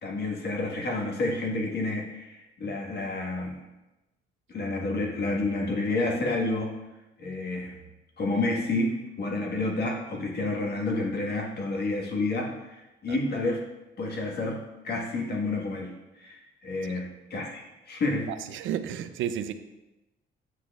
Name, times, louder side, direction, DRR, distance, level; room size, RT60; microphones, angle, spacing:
voice 1, 0.0-3.6 4.5-6.7 7.2-7.8 8.2-13.6 14.0-18.3, left 2 dB, 55° left, -1 dB, 1.6 m, -30 dB
voice 2, 18.5-19.5, right 10 dB, 80° right, 11 dB, 0.5 m, -32 dB
8.0 x 6.0 x 2.4 m, 1.0 s
cardioid pair, 90°, 20 cm